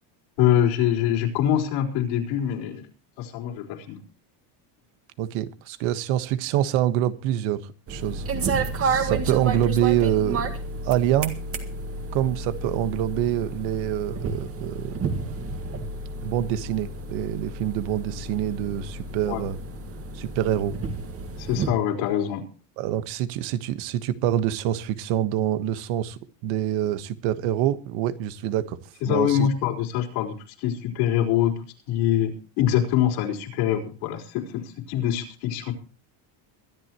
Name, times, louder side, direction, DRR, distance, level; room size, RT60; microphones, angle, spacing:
voice 1, 0.4-2.9 3.2-4.0 19.2-19.4 21.4-22.4 29.0-35.7, left 10 dB, 75° left, 4.3 m, -24 dB
voice 2, 5.2-8.2 8.8-10.5 10.8-11.4 12.1-15.1 16.2-19.6 20.1-20.7 22.8-28.8 29.1-29.5, right 12 dB, 75° right, 1.5 m, -26 dB
sound 1, 7.9-21.7, right 3 dB, 30° right, 1.8 m, -31 dB
23.0 x 11.5 x 3.0 m
cardioid pair, 170°, 48 cm